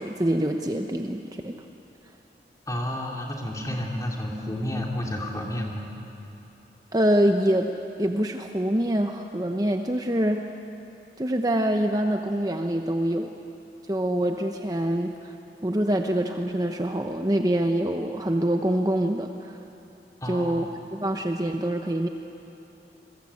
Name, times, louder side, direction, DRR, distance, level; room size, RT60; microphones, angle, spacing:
voice 1, 0.0-1.6 6.9-7.7 8.0-10.4 11.2-13.3 13.9-15.3 15.6-19.6 20.3-20.7 20.9-22.1, right 1 dB, 20° right, 4 dB, 0.8 m, -25 dB
voice 2, 2.7-5.9 20.2-20.7, left 1 dB, 20° left, -1 dB, 3.2 m, -31 dB
28.0 x 22.0 x 8.5 m, 2.9 s
head